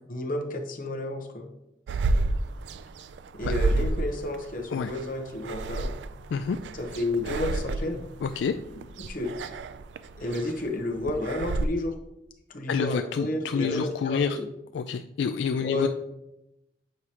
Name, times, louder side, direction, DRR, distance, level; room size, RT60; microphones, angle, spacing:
voice 1, 0.1-1.5 3.3-5.9 6.8-8.0 9.1-9.3 10.2-11.9 12.5-14.5 15.6-15.9, left 1 dB, 50° left, 3 dB, 0.9 m, -31 dB
sound 1, 1.9-11.7, right 2 dB, 75° right, 0.3 m, -31 dB
voice 2, 8.2-8.5 12.7-14.4 14.7-15.9, left 6 dB, 75° left, 7 dB, 0.3 m, -28 dB
7.8 x 4.8 x 2.9 m, 0.89 s
head